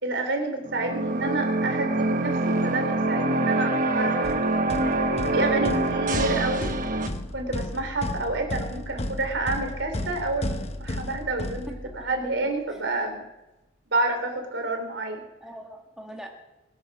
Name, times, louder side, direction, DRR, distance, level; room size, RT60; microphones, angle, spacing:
voice 1, 0.0-4.7 5.3-6.7 7.3-13.2 13.9-15.2, right 2 dB, 75° right, 3 dB, 3.9 m, -29 dB
sound 1, 0.6-7.1, right 2 dB, 45° right, 1.1 m, -25 dB
sound 2, 4.2-12.2, left 1 dB, 35° left, 1.1 m, -34 dB
voice 2, 7.1-7.7 12.0-12.3 12.7-12.9 15.4-16.3, equal, 5° right, 0 dB, 2.0 m, -45 dB
22.0 x 9.9 x 6.4 m, 0.97 s
head